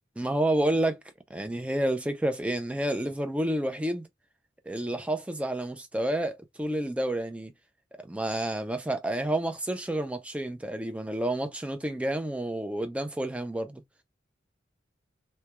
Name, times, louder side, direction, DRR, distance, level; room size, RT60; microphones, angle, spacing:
voice 1, 0.2-1.0 1.3-4.1 4.7-7.5 8.0-13.8, right 1 dB, 5° right, 0.3 m, -29 dB
2.2 x 2.1 x 2.8 m
head